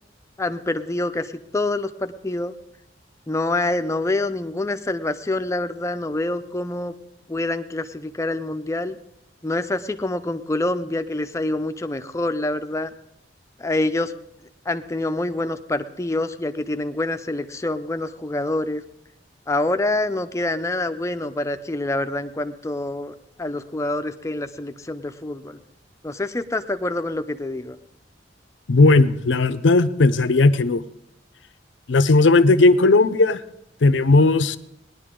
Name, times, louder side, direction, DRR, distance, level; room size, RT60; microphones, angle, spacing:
voice 1, 0.4-2.5 3.3-6.9 7.3-9.0 9.4-12.9 13.6-14.1 14.7-18.8 19.5-25.6 26.0-27.8, left 2 dB, 15° left, 9 dB, 0.5 m, -26 dB
voice 2, 28.7-30.8 31.9-33.4 33.8-34.6, left 3 dB, 85° left, 13 dB, 0.6 m, -16 dB
18.5 x 11.0 x 3.8 m, 0.79 s
head